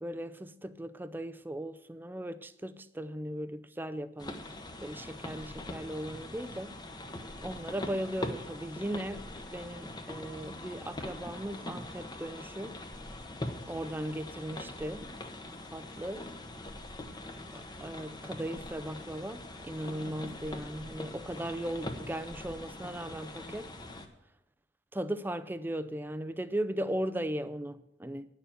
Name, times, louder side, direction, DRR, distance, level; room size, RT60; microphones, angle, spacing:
voice 1, 0.0-4.4 4.8-6.7 7.4-12.8 13.7-15.1 15.7-16.3 17.5-23.7 24.9-28.3, right 1 dB, 10° right, 0.4 m, -37 dB
sound 1, 4.2-24.1, left 1 dB, 25° left, 1.0 m, -42 dB
10.5 x 6.9 x 8.9 m
head